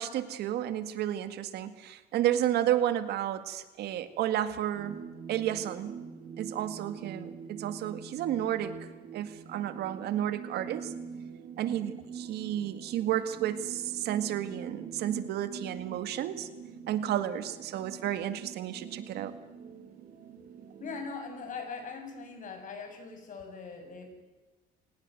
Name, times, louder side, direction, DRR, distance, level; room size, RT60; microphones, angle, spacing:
voice 1, 0.0-5.0 5.3-5.9 6.4-8.8 9.1-10.9 11.6-16.5 16.9-19.3, right 11 dB, 75° right, 11 dB, 2.0 m, -32 dB
sound 1, 4.7-21.0, right 6 dB, 50° right, 3.2 m, -45 dB
voice 2, 20.8-24.1, left 4 dB, 50° left, 5 dB, 7.5 m, -41 dB
27.5 x 19.0 x 7.8 m, 1.2 s
cardioid pair, 110°, 17 cm